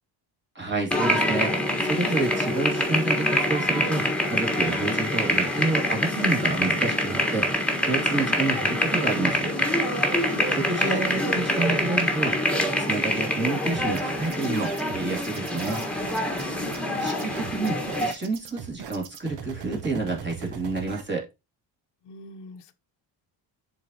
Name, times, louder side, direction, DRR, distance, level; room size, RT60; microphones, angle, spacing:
voice 1, 0.5-1.5 1.8-7.5 7.8-9.5 10.5-12.4 12.8-15.8 17.0-21.3, right 3 dB, 25° right, 2.6 m, -29 dB
sound 1, 0.9-18.1, left 1 dB, 5° left, 1.5 m, -25 dB
voice 2, 10.2-10.7 16.4-17.2 22.0-22.7, left 5 dB, 70° left, 0.9 m, -43 dB
sound 2, 13.7-21.0, right 7 dB, 75° right, 1.2 m, -40 dB
10.5 x 4.1 x 2.9 m
cardioid pair, 120°, 42 cm